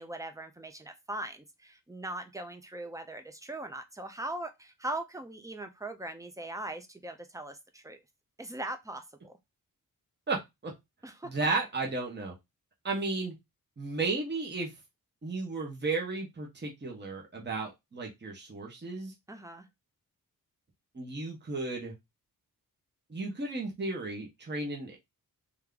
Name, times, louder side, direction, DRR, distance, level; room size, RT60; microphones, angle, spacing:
voice 1, 0.0-8.0 8.4-9.4 11.0-11.3 19.3-19.7, right 1 dB, 10° right, 0.6 m, -40 dB
voice 2, 10.3-10.7 11.2-12.3 12.8-13.3 13.8-14.7 15.2-19.1 20.9-21.9 23.1-25.0, right 3 dB, 30° right, 1.2 m, -34 dB
3.4 x 3.0 x 3.8 m
wide cardioid pair, 150°, 36 cm